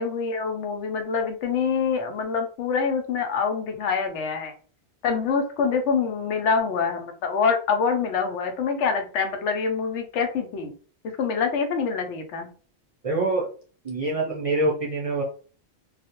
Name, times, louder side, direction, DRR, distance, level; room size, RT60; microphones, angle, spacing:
voice 1, 0.0-4.5 5.0-10.7 11.0-12.5, left 5 dB, 90° left, 5 dB, 0.9 m, -25 dB
voice 2, 13.0-13.5 13.8-15.2, right 2 dB, 45° right, -2 dB, 0.5 m, -25 dB
2.4 x 2.0 x 2.8 m, 0.40 s
omnidirectional pair, 1.2 m